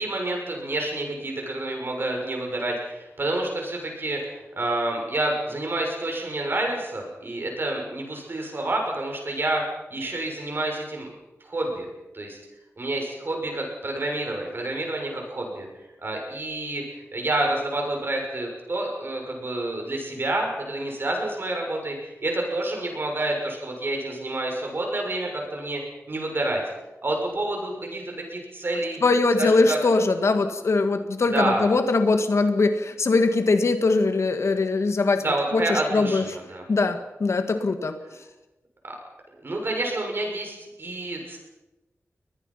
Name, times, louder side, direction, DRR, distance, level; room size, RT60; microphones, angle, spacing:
voice 1, 0.0-9.6 9.9-11.1 11.4-11.9 12.1-12.4 12.8-15.7 16.0-25.8 26.1-26.6 27.0-28.0 28.3-29.0 29.4-29.8 31.3-31.6 35.2-36.6 38.8-39.0 39.4-41.4, right 2 dB, 45° right, 1 dB, 6.8 m, -28 dB
voice 2, 29.0-35.3 35.5-36.3 36.7-38.0, left 3 dB, 65° left, 8 dB, 1.9 m, -21 dB
23.0 x 20.0 x 5.8 m, 1.0 s
wide cardioid pair, 100°, 5 cm